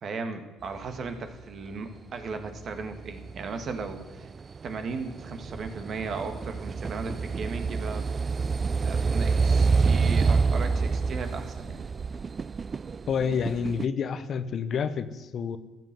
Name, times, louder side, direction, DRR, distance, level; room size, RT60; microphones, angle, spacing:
voice 1, 0.0-4.3 4.6-8.1 8.8-11.8, right 4 dB, 55° right, 7 dB, 1.7 m, -36 dB
sound 1, 2.5-13.8, right 4 dB, 40° right, 0.4 m, -27 dB
voice 2, 13.1-15.6, left 6 dB, 55° left, 12 dB, 0.9 m, -28 dB
13.5 x 7.7 x 7.5 m, 1.2 s
supercardioid pair, 65°, 0 cm